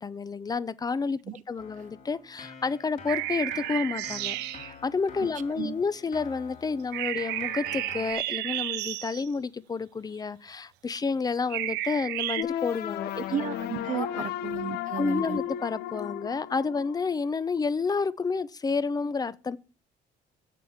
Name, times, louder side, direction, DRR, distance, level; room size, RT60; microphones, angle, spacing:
voice 1, 0.0-1.2 1.5-13.2 13.9-14.2 15.0-19.6, left 4 dB, 20° left, 0.6 m, -30 dB
Keyboard (musical), 1.6-8.1, left 6 dB, 50° left, 3.1 m, -47 dB
sound 1, 3.1-4.7 6.9-9.3 11.5-12.4, right 16 dB, 90° right, 0.6 m, -32 dB
sound 2, 12.4-17.4, left 11 dB, 75° left, 0.7 m, -34 dB
voice 2, 13.1-15.4, right 9 dB, 50° right, 0.7 m, -34 dB
7.5 x 7.2 x 7.1 m
cardioid pair, 110°, 17 cm